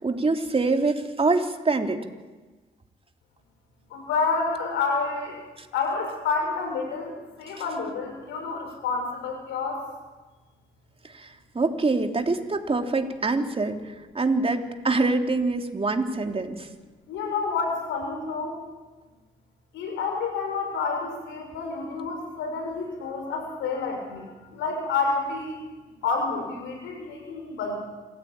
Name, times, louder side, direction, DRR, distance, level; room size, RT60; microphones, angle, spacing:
voice 1, 0.0-2.0 5.6-5.7 11.0-16.7, right 3 dB, 30° right, 4 dB, 3.2 m, -25 dB
voice 2, 3.9-5.4 5.7-9.8 17.1-18.6 19.7-25.7 26.0-27.7, left 4 dB, 85° left, 3 dB, 6.2 m, -29 dB
26.5 x 15.5 x 9.0 m, 1.3 s
supercardioid pair, 55°, 19 cm